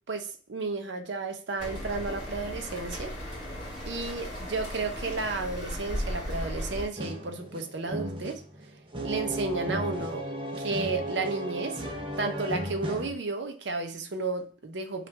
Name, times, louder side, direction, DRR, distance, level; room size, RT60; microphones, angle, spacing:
voice 1, 0.1-3.1 3.9-8.4 9.0-10.2 10.6-11.9 12.2-15.1, right 3 dB, 70° right, 6 dB, 0.7 m, -32 dB
sound 1, 1.6-6.9, equal, 40° left, 2.3 m, -36 dB
sound 2, 7.0-13.1, equal, 25° right, 0.7 m, -35 dB
5.8 x 2.5 x 3.3 m, 0.41 s
head